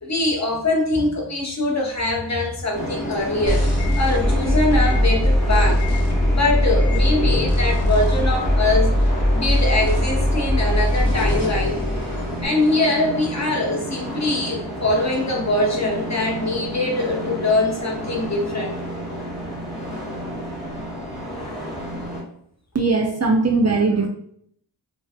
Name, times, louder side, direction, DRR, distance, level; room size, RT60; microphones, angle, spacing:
voice 1, 0.0-3.6 4.0-8.9 9.3-11.8 12.4-18.7 21.4-21.7, left 2 dB, 40° left, -1 dB, 0.7 m, -23 dB
sound 1, 2.7-22.2, equal, ahead, 0.9 m, -31 dB
sound 2, 3.5-12.5, left 1 dB, 65° left, 0.9 m, -20 dB
voice 2, 22.7-24.1, right 3 dB, 40° right, 2 dB, 0.4 m, -19 dB
2.4 x 2.2 x 2.6 m, 0.66 s
wide cardioid pair, 45°, 45 cm